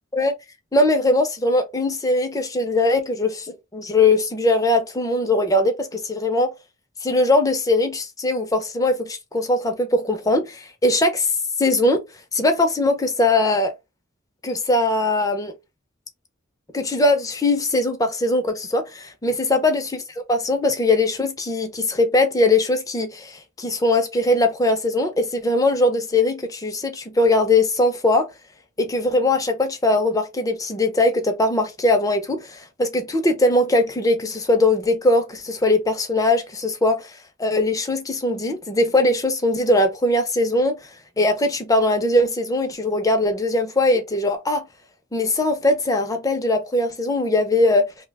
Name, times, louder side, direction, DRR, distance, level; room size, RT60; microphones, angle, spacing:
voice 1, 0.7-6.5 7.0-12.0 12.3-13.7 14.4-15.5 16.7-20.0 20.3-28.3 28.8-37.1 37.4-40.8 41.2-44.6 45.1-47.9, left 2 dB, 20° left, 0.5 m, -20 dB
2.7 x 2.1 x 3.3 m
head